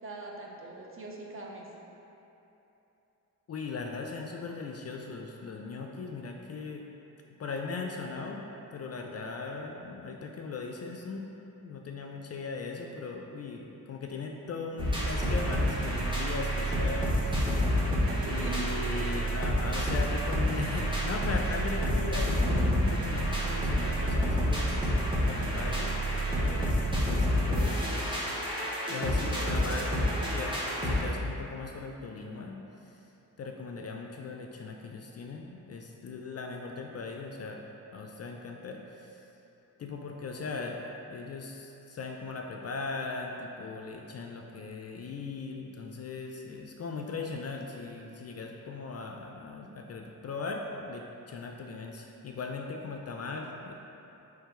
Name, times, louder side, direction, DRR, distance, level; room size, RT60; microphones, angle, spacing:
voice 1, 0.0-1.7 17.5-19.1, right 2 dB, 35° right, -2 dB, 0.8 m, -43 dB
voice 2, 3.5-6.8 7.4-11.3 11.6-17.7 18.3-28.1 28.9-30.0 30.3-32.6 33.4-37.6 37.9-39.2 39.8-53.7, left 4 dB, 40° left, 1 dB, 0.4 m, -39 dB
sound 1, 14.8-31.0, equal, 10° right, 1.2 m, -28 dB
3.6 x 3.2 x 4.4 m, 3.0 s
supercardioid pair, 55°, 40 cm